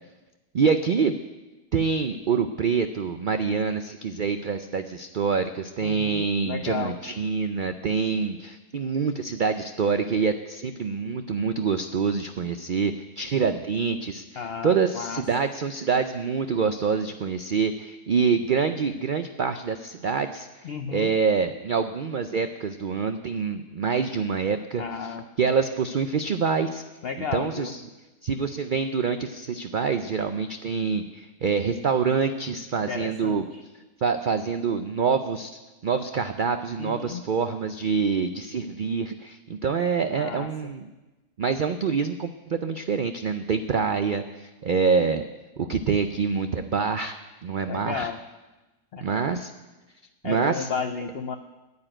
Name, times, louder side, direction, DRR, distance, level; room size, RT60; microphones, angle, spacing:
voice 1, 0.5-1.2 1.7-20.5 20.9-26.8 27.2-27.8 28.2-33.4 34.0-35.5 35.8-40.9 41.4-45.3 45.6-47.2 47.4-48.1 49.0-49.5 50.2-50.7, right 5 dB, 55° right, 8 dB, 0.5 m, -26 dB
voice 2, 5.8-7.0 14.4-15.2 20.6-21.1 24.8-25.2 27.0-27.7 32.9-33.6 36.8-37.2 40.1-40.7 47.7-48.2 48.9-49.0 50.2-51.4, left 6 dB, 60° left, 8 dB, 0.7 m, -33 dB
9.9 x 9.5 x 8.9 m, 1.1 s
omnidirectional pair, 1.5 m